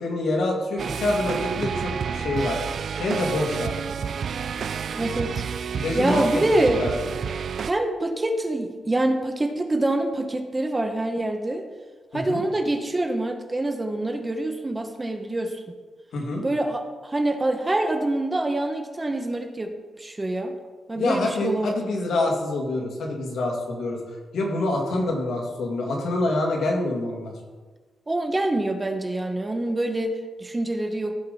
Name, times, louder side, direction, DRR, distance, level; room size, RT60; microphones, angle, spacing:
voice 1, 0.0-2.6 3.0-3.7 5.8-6.4 6.8-6.9 12.1-12.4 16.1-16.4 21.0-24.0 24.3-27.3, left 2 dB, 75° left, 0 dB, 2.2 m, -26 dB
sound 1, 0.8-7.7, right 7 dB, 60° right, 0.3 m, -30 dB
voice 2, 4.9-5.4 5.9-6.8 7.6-11.6 12.1-15.6 16.4-20.5 20.9-21.8 28.1-31.1, right 1 dB, 20° right, 5 dB, 1.0 m, -25 dB
15.5 x 5.2 x 4.1 m, 1.3 s
cardioid pair, 115°, 0 cm